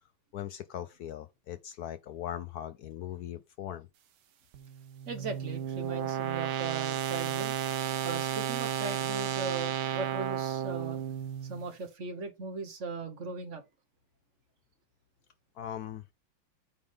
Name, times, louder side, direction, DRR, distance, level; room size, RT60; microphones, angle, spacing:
voice 1, 0.3-3.9 15.6-16.0, left 11 dB, 85° left, 0.8 m, -39 dB
sound 1, 4.5-11.7, right 10 dB, 85° right, 1.8 m, -33 dB
voice 2, 5.0-7.5 8.0-11.0 11.4-13.6, right 4 dB, 45° right, 1.2 m, -38 dB
8.5 x 3.6 x 5.0 m
omnidirectional pair, 2.2 m